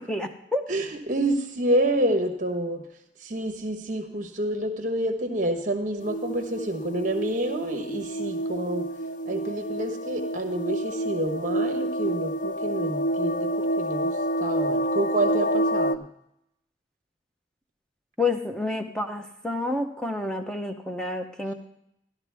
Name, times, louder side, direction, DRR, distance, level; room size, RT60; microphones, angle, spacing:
voice 1, 0.0-0.6 18.2-21.5, left 2 dB, 5° left, 5 dB, 0.8 m, -29 dB
voice 2, 0.7-2.8 3.2-8.9 9.2-16.0, right 1 dB, 45° right, 5 dB, 1.2 m, -28 dB
sound 1, 6.0-16.0, right 1 dB, 45° left, 0.3 m, -28 dB
12.5 x 12.0 x 3.5 m, 0.80 s
head